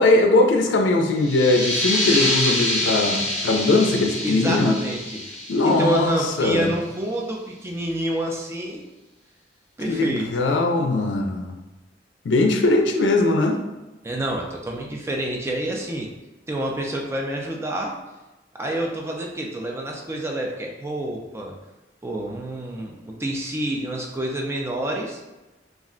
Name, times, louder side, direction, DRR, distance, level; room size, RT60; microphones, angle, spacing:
voice 1, 0.0-4.8 5.5-6.7 9.9-11.5 12.2-13.6, left 2 dB, 90° left, 4 dB, 0.4 m, -20 dB
sound 1, 1.2-6.6, left 1 dB, 20° left, 0.8 m, -26 dB
voice 2, 4.2-8.8 9.8-10.3 14.0-16.1 16.5-18.0 18.6-21.5 22.0-25.2, right 1 dB, 15° right, 0 dB, 0.3 m, -28 dB
2.4 x 2.1 x 3.6 m, 1.1 s
head